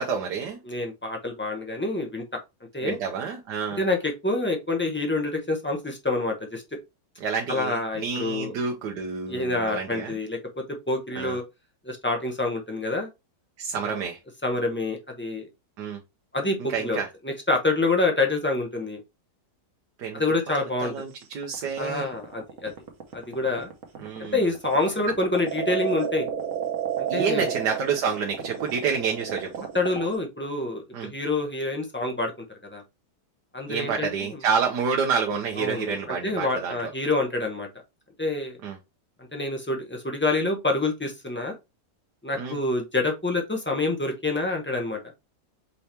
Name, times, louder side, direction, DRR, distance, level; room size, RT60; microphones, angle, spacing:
voice 1, 0.0-0.6 2.8-3.8 7.2-10.2 11.1-11.4 13.6-14.2 15.8-16.0 16.7-17.1 20.0-20.2 20.5-22.1 24.0-24.5 27.1-29.7 30.9-31.1 33.7-36.8 38.6-38.8 42.4-42.6, right 6 dB, 85° right, 1.4 m, -29 dB
voice 2, 0.7-2.2 2.7-3.0 3.8-6.6 7.5-8.5 9.3-11.4 11.8-13.1 13.7-14.0 14.4-15.5 16.3-19.0 20.1-20.9 21.8-22.7 23.1-23.7 24.2-26.3 27.0-27.5 29.7-32.3 32.6-32.8 33.5-34.4 35.6-37.7 38.2-38.6 39.2-41.5 42.2-45.0, left 2 dB, 15° left, 0.4 m, -27 dB
sound 1, 21.2-30.2, right 8 dB, 55° right, 1.3 m, -31 dB
5.5 x 2.9 x 3.2 m
omnidirectional pair, 1.8 m